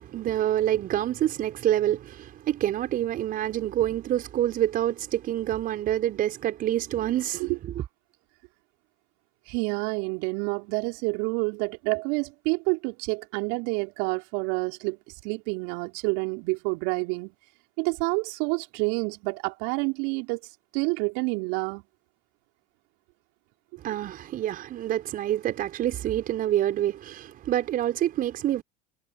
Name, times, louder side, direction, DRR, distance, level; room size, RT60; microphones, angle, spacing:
voice 1, 0.0-7.5 23.8-28.6, right 12 dB, 45° right, 5.1 m, -27 dB
voice 2, 9.5-15.0 15.2-17.3 17.8-20.4 20.7-21.8, right 31 dB, 60° right, 5.1 m, -28 dB
hypercardioid pair, 75°, 20 cm